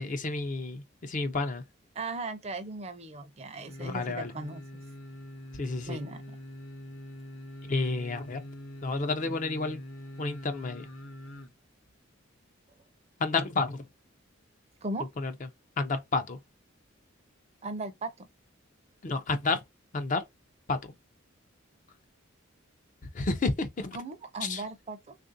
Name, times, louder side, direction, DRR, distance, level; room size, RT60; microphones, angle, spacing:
voice 1, 0.0-1.6 3.8-4.3 5.6-6.0 7.7-8.4 8.8-9.8 10.2-10.9 13.2-13.8 15.2-15.3 15.8-16.4 19.0-19.6 19.9-20.2 20.7-20.9 23.1-24.0 24.4-24.6, left 3 dB, 40° left, 0.5 m, -30 dB
voice 2, 1.9-4.6 5.9-6.4 14.8-15.1 17.6-18.3 23.9-25.2, right 2 dB, 30° right, 0.5 m, -37 dB
sound 1, 3.7-11.5 11.9-12.0, equal, 80° left, 0.9 m, -44 dB
3.5 x 2.4 x 2.5 m
head